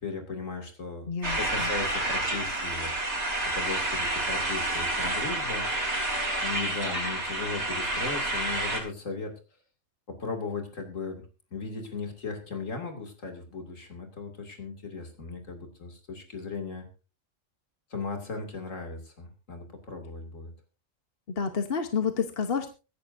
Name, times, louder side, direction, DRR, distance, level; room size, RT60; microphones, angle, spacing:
voice 1, 0.0-1.1 1.4-3.3 3.5-5.7 6.4-9.3 10.1-11.2 11.5-16.9 17.9-20.5, left 4 dB, 85° left, 4 dB, 3.0 m, -37 dB
voice 2, 1.1-1.7 21.4-22.7, left 6 dB, 50° left, 7 dB, 1.3 m, -29 dB
sound 1, 1.2-8.8, right 1 dB, 60° right, 4.0 m, -29 dB
24.0 x 11.0 x 2.6 m, 0.33 s
omnidirectional pair, 1.3 m